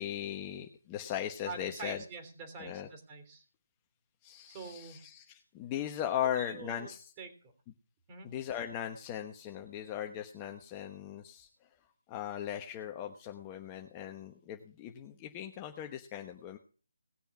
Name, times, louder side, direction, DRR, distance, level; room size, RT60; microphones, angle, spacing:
voice 1, 0.0-2.0 2.6-2.9 4.2-7.1 8.2-11.5 12.1-16.6, left 10 dB, 20° left, 4 dB, 1.1 m, -38 dB
voice 2, 1.5-3.4 4.5-5.0 6.2-6.9 7.2-7.3 8.1-8.3, right 4 dB, 25° right, 6 dB, 3.1 m, -45 dB
18.5 x 6.9 x 6.0 m, 0.41 s
figure-of-eight pair, 155°, 0 cm